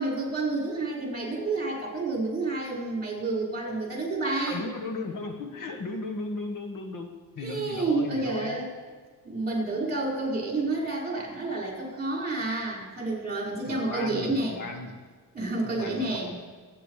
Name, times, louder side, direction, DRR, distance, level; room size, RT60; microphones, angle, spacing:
voice 1, 0.0-4.6 7.4-8.7 9.2-14.6 15.3-16.3, right 2 dB, 25° right, -2 dB, 5.1 m, -29 dB
voice 2, 4.5-8.7 13.6-15.0 15.8-16.4, left 3 dB, 65° left, 4 dB, 1.7 m, -36 dB
23.5 x 9.5 x 4.9 m, 1.5 s
wide cardioid pair, 135°, 34 cm